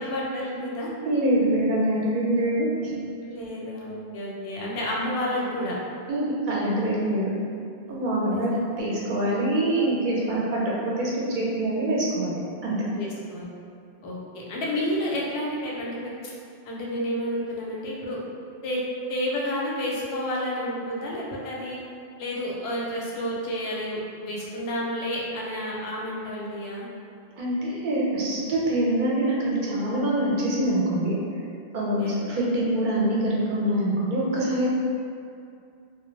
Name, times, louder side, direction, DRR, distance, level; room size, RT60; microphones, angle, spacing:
voice 1, 0.0-0.9 3.2-5.8 8.3-8.6 12.9-13.5 14.0-16.3 16.7-18.2 18.6-18.8 19.1-21.8 22.2-26.9 31.8-32.2, equal, 90° left, -4 dB, 0.8 m, -30 dB
voice 2, 1.0-2.9 6.1-7.3 7.9-12.8 27.4-31.2 31.7-34.7, right 1 dB, 60° right, -5 dB, 0.6 m, -25 dB
2.4 x 2.1 x 3.1 m, 2.5 s
omnidirectional pair, 1.0 m